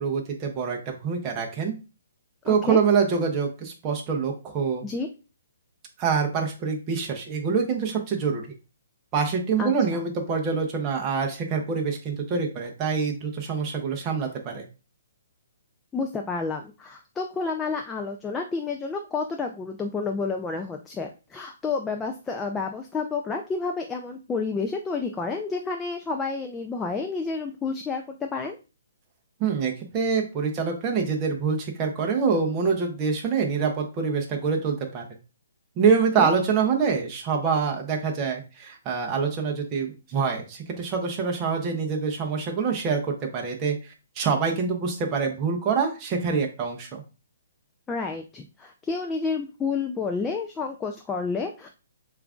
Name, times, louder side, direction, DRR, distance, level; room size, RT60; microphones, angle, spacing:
voice 1, 0.0-1.7 2.4-4.8 6.0-8.4 9.1-14.6 29.4-35.0 35.8-43.8 44.2-47.0, right 5 dB, 20° right, 1 dB, 0.6 m, -25 dB
voice 2, 2.5-2.8 4.8-5.1 9.6-9.7 15.9-28.6 36.2-36.3 47.9-51.7, left 4 dB, 10° left, 3 dB, 0.3 m, -30 dB
6.8 x 2.5 x 2.3 m, 0.31 s
hypercardioid pair, 165°, 0 cm